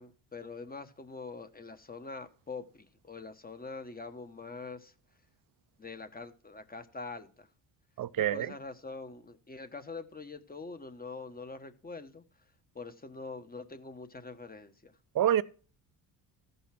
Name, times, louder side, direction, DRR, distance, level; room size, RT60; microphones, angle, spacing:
voice 1, 0.0-4.9 5.8-7.5 8.2-12.2 12.7-14.9, left 3 dB, 20° left, 1.3 m, -44 dB
voice 2, 8.0-8.5 15.1-15.4, right 11 dB, 45° right, 0.7 m, -26 dB
14.0 x 5.5 x 6.0 m
cardioid pair, 80°, 45 cm